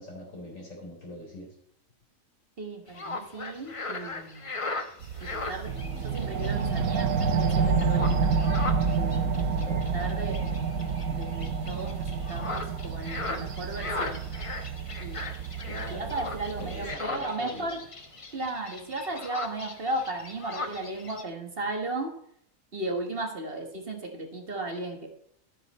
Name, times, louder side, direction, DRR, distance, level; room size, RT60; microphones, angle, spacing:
voice 1, 0.0-1.5 9.5-9.8 15.6-16.1 16.6-17.7, left 1 dB, 75° left, -2 dB, 4.5 m, -41 dB
voice 2, 2.6-4.5 5.2-5.8 6.0-8.4 8.9-9.5 9.7-10.6 11.1-14.2 15.0-15.4 15.7-17.8 18.3-22.1 22.7-25.1, right 2 dB, 45° right, 3 dB, 1.6 m, -35 dB
sound 1, 2.9-21.2, left 3 dB, 30° left, 0.9 m, -39 dB
sound 2, 5.0-16.9, right 9 dB, 90° right, 1.1 m, -40 dB
sound 3, 5.7-16.7, right 5 dB, 70° right, 1.3 m, -28 dB
12.0 x 9.1 x 4.2 m, 0.69 s
omnidirectional pair, 1.4 m